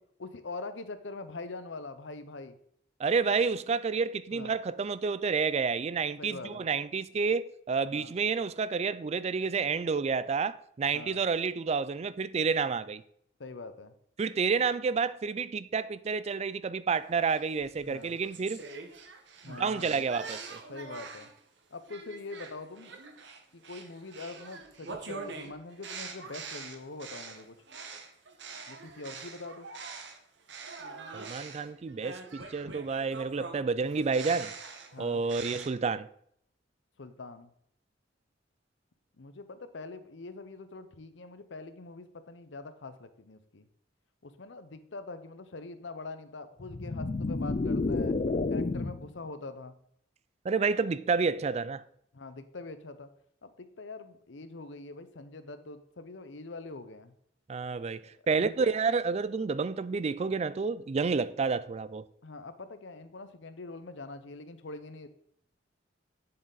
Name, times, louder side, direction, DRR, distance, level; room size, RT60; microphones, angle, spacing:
voice 1, 0.2-2.6 4.3-4.6 6.2-6.7 7.9-8.1 10.9-11.2 13.4-13.9 17.8-18.2 19.4-20.1 20.7-21.3 21.7-22.9 23.5-27.6 28.7-29.7 34.9-35.2 37.0-37.5 39.2-43.7 44.2-48.2 48.5-49.7 52.1-53.1 53.4-57.1 58.3-58.7 62.2-65.1, left 3 dB, 75° left, 0.8 m, -43 dB
voice 2, 3.0-13.0 14.2-18.6 19.5-20.6 31.1-34.5 35.0-36.1 50.4-51.8 57.5-62.1, right 5 dB, 35° right, 0.4 m, -29 dB
sound 1, 17.3-21.4 21.9-30.2 30.5-35.7, right 4 dB, 65° right, 1.2 m, -44 dB
sound 2, 46.6-49.1, left 3 dB, 40° left, 0.5 m, -30 dB
7.7 x 7.4 x 4.0 m
head